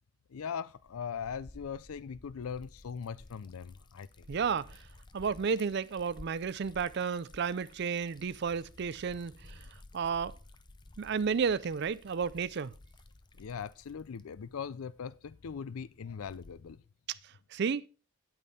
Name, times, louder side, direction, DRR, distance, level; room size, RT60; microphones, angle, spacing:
voice 1, 0.3-4.3 13.4-16.8, left 6 dB, 80° left, 0.4 m, -40 dB
Liquid, 0.7-16.8, left 2 dB, 20° left, 0.6 m, -55 dB
voice 2, 4.3-4.8 5.1-9.6 9.9-10.3 11.0-12.7 17.1-17.2 17.5-17.9, right 6 dB, 50° right, 0.4 m, -32 dB
8.8 x 8.4 x 4.1 m
head